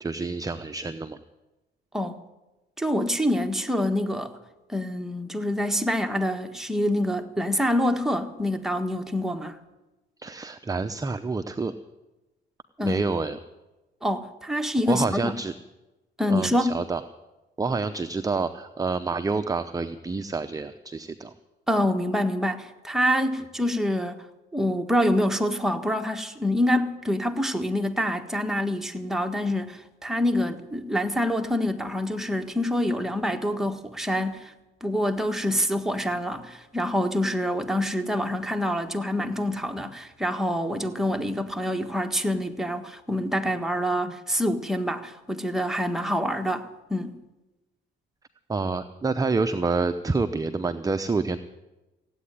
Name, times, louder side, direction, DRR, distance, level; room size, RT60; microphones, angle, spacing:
voice 1, 0.0-1.2 10.2-11.7 12.8-13.4 14.9-15.5 16.3-17.0 17.6-21.3 48.5-51.4, right 3 dB, 20° right, 0.7 m, -28 dB
voice 2, 2.8-4.3 4.7-9.6 12.8-13.0 14.0-15.3 16.2-16.8 21.7-24.2 24.5-34.5 34.8-47.1, equal, ahead, 1.5 m, -26 dB
16.0 x 8.6 x 9.9 m
cardioid pair, 90°, 20 cm